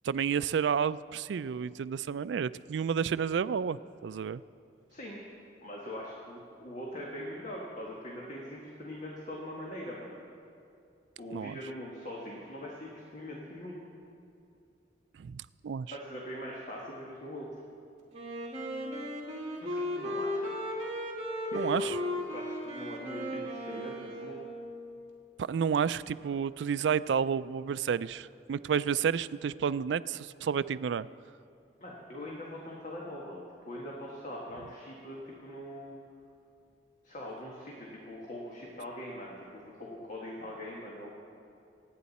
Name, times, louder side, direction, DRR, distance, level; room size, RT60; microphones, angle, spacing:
voice 1, 0.0-4.4 11.3-11.6 15.2-15.9 21.5-22.0 25.4-31.1, right 7 dB, 75° right, 16 dB, 0.3 m, -31 dB
voice 2, 4.9-5.2 5.6-10.2 11.2-13.8 15.9-17.5 19.6-20.7 21.7-24.4 31.8-36.0 37.0-41.1, left 1 dB, 45° left, -3 dB, 1.7 m, -42 dB
Wind instrument woodwind instrument, 18.1-24.8, left 1 dB, 40° right, 2.5 m, -36 dB
27.5 x 9.2 x 4.2 m, 2.5 s
head